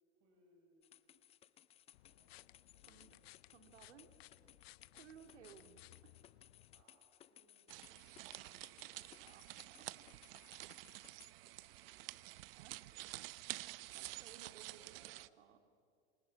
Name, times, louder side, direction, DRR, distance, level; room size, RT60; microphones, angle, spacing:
voice 1, 0.1-1.1 2.0-2.4 2.7-3.3 4.3-4.7 5.0-5.4 6.7-9.9 10.4-13.4 13.6-14.0 14.4-15.2, right 2 dB, 40° right, 1 dB, 5.6 m, -74 dB
sound 1, 0.8-11.3, left 11 dB, 20° left, 0.6 m, -64 dB
sound 2, 1.9-6.8, left 17 dB, 65° left, 0.6 m, -62 dB
voice 2, 3.5-4.1 4.9-6.3 9.2-10.0 12.5-13.2 13.5-15.0 15.4-15.6, right 8 dB, 85° right, 6 dB, 2.7 m, -61 dB
sound 3, 7.7-15.3, right 18 dB, 55° right, 0.8 m, -50 dB
28.5 x 26.5 x 7.6 m, 2.4 s
supercardioid pair, 150°, 34 cm